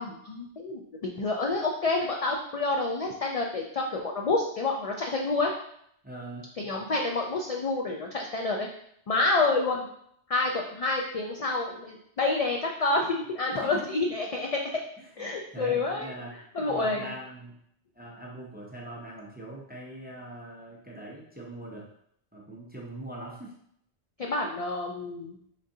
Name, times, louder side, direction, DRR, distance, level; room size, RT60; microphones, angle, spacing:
voice 1, 0.0-5.5 6.6-8.7 9.1-9.9 10.3-14.6 15.2-16.1 16.5-17.1 24.2-25.4, left 3 dB, 65° left, 0 dB, 0.3 m, -28 dB
voice 2, 6.0-6.4 13.5-13.8 15.0-16.3 16.7-17.6 18.0-21.9 22.3-23.5, right 1 dB, 10° right, -3 dB, 0.4 m, -42 dB
3.7 x 3.7 x 2.7 m, 0.70 s
omnidirectional pair, 1.1 m